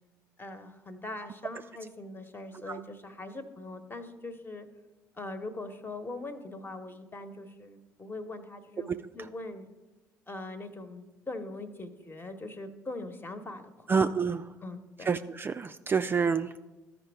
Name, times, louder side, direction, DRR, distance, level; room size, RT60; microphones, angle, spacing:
voice 1, 0.4-4.7 5.2-9.7 10.3-14.1 14.6-15.1, left 2 dB, 25° left, 8 dB, 1.1 m, -41 dB
voice 2, 13.9-14.5 15.1-16.6, right 5 dB, 25° right, 9 dB, 0.3 m, -28 dB
13.5 x 5.2 x 3.5 m, 1.1 s
figure-of-eight pair, 55°, 9 cm